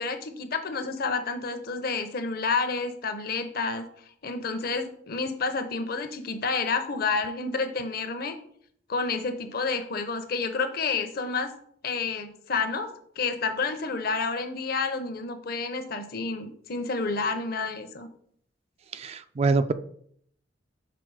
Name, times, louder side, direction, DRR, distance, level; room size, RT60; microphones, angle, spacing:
voice 1, 0.0-3.9 4.2-8.4 8.9-11.5 11.8-12.9 13.2-18.1, left 4 dB, 50° left, 9 dB, 0.7 m, -29 dB
voice 2, 18.9-19.7, right 3 dB, 35° right, 11 dB, 0.3 m, -25 dB
6.0 x 4.4 x 4.7 m, 0.65 s
head